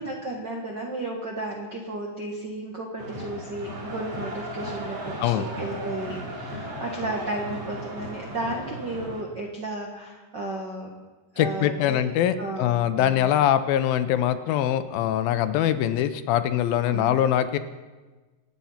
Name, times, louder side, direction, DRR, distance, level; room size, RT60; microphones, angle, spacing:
voice 1, 0.0-11.0 11.3-12.0 12.4-13.3 16.9-17.2, right 2 dB, 60° right, 0 dB, 1.1 m, -33 dB
sound 1, 3.0-9.2, equal, 35° right, 3.1 m, -36 dB
voice 2, 11.4-17.6, left 11 dB, 80° left, 11 dB, 2.4 m, -23 dB
25.0 x 9.1 x 5.7 m, 1.3 s
omnidirectional pair, 4.4 m